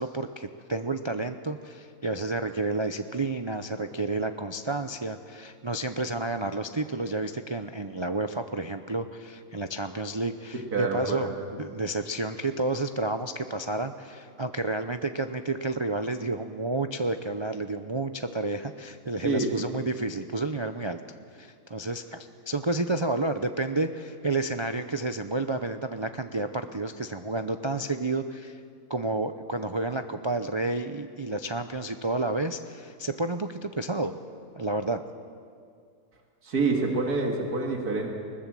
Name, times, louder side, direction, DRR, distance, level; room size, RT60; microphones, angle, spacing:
voice 1, 0.0-21.0 21.3-28.6 28.9-34.1 34.6-35.0, right 2 dB, 45° right, 7 dB, 0.3 m, -30 dB
voice 2, 10.7-11.3 19.2-19.8 36.4-38.1, right 3 dB, 90° right, 1 dB, 2.5 m, -27 dB
20.5 x 20.0 x 7.7 m, 2.3 s
omnidirectional pair, 1.6 m